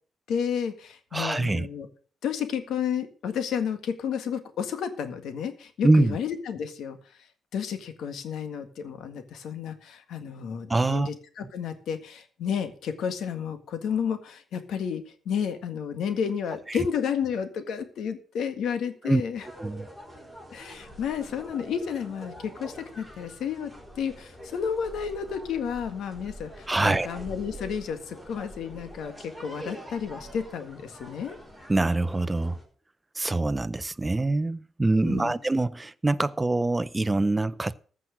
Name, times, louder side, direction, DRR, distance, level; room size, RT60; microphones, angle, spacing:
voice 1, 0.3-1.9 2.2-7.0 7.5-19.5 20.5-31.4 35.0-35.3, left 7 dB, 80° left, 1.8 m, -31 dB
voice 2, 1.1-1.7 5.8-6.2 10.7-11.1 16.7-16.8 19.0-19.2 19.6-19.9 26.7-27.1 31.7-32.6 33.2-37.7, right 2 dB, 15° right, 0.5 m, -24 dB
sound 1, 19.3-32.6, equal, 10° left, 4.5 m, -45 dB
14.5 x 6.1 x 6.5 m
cardioid pair, 120°, 0 cm